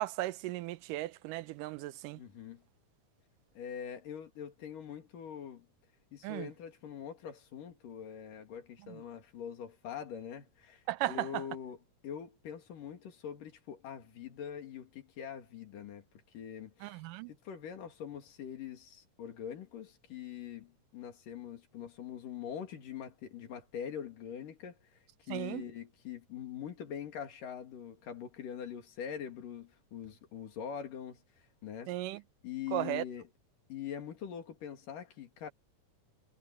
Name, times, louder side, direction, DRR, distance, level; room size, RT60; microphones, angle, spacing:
voice 1, 0.0-2.2 6.2-6.5 8.9-9.0 10.9-11.4 16.8-17.3 25.3-25.6 31.9-32.2 32.7-33.0, right 16 dB, 85° right, 2.3 m, -36 dB
voice 2, 2.2-2.6 3.5-5.7 6.1-16.0 16.3-17.0 17.3-25.0 25.3-31.2 31.6-31.9 32.4-33.3 33.7-35.5, left 8 dB, 80° left, 4.0 m, -43 dB
omnidirectional pair, 3.8 m